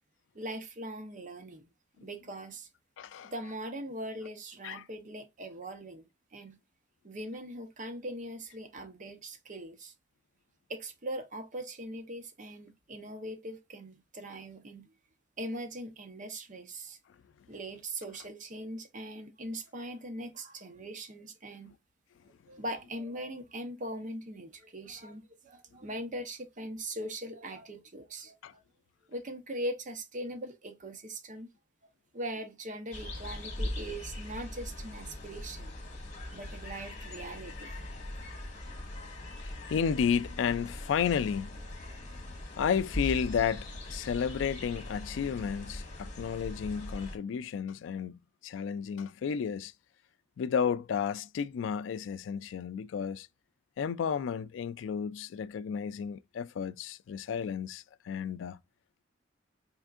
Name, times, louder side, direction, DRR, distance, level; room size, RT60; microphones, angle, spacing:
voice 1, 0.3-1.7 2.0-2.7 3.2-6.6 7.0-9.9 10.7-14.9 15.4-17.0 17.5-21.7 22.5-28.6 29.1-31.5 32.1-35.7 36.3-37.9, right 1 dB, 45° right, 0.8 m, -41 dB
voice 2, 3.0-3.3 4.6-4.8 28.4-28.5 39.4-41.6 42.6-49.7 50.4-53.3 53.8-58.6, left 7 dB, 80° left, 0.3 m, -32 dB
sound 1, 32.9-47.2, left 1 dB, 40° left, 1.4 m, -41 dB
4.4 x 3.4 x 2.4 m
head